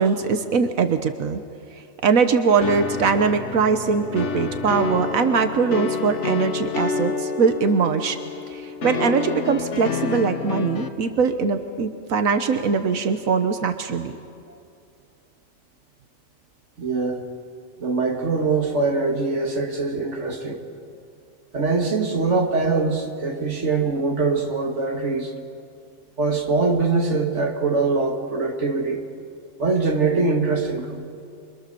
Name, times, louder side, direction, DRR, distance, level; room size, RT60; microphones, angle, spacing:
voice 1, 0.0-1.4 2.0-8.2 8.5-14.1, right 5 dB, 85° right, 8 dB, 1.4 m, -21 dB
sound 1, 2.6-10.9, left 5 dB, 60° left, 1.5 m, -28 dB
voice 2, 16.8-17.3 17.8-20.6 21.5-25.3 26.2-29.0 29.6-31.0, right 3 dB, 60° right, 3 dB, 2.3 m, -23 dB
27.0 x 24.0 x 6.9 m, 2.4 s
omnidirectional pair, 1.4 m